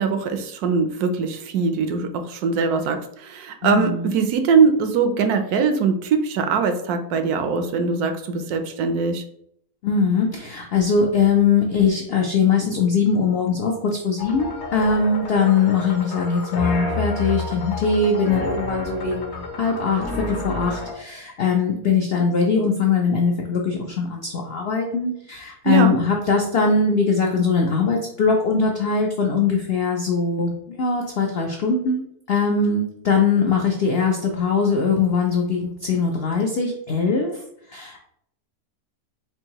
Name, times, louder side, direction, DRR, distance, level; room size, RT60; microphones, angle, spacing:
voice 1, 0.0-9.2 25.6-25.9, right 5 dB, 75° right, 7 dB, 1.1 m, -21 dB
voice 2, 3.6-4.1 9.8-37.4 37.7-38.0, left 5 dB, 80° left, 1 dB, 0.5 m, -21 dB
sound 1, 14.2-20.9, left 3 dB, 55° left, 0.9 m, -30 dB
4.6 x 2.7 x 2.9 m, 0.70 s
omnidirectional pair, 1.7 m